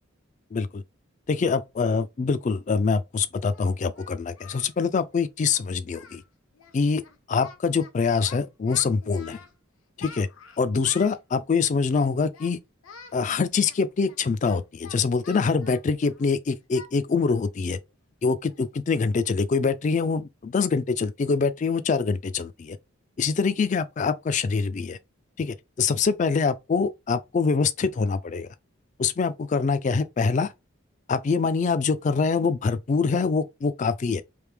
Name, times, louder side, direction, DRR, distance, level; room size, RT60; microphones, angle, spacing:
voice 1, 0.5-0.8 1.3-6.2 6.7-7.0 7.3-9.4 10.0-10.3 10.6-12.6 13.1-17.8 18.2-22.8 23.2-25.0 25.4-28.5 29.0-30.5 31.1-34.2, left 5 dB, 35° left, 0.3 m, -24 dB
Singing, 3.5-4.7 5.0-5.2 5.5-5.6 5.9-6.3 6.5-6.8 7.0-7.9 8.2-9.5 10.0-11.2 11.9-12.5 12.8-13.2 13.6-16.3 16.7-16.9 17.3-17.5 17.9-18.0 18.5-18.7, left 5 dB, 80° left, 0.8 m, -47 dB
3.3 x 2.8 x 3.4 m
head